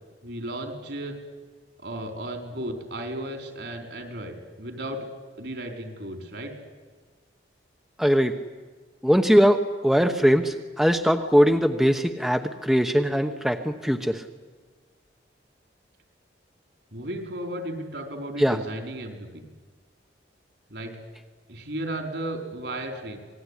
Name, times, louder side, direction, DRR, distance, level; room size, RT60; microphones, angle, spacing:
voice 1, 0.2-1.2 1.8-5.1 5.4-6.5 16.9-19.4 20.7-21.0 21.5-23.2, right 1 dB, 65° right, 4 dB, 4.4 m, -34 dB
voice 2, 8.0-8.3 9.0-14.2 18.4-18.6, equal, ahead, 6 dB, 0.9 m, -21 dB
26.5 x 20.5 x 9.9 m, 1.4 s
head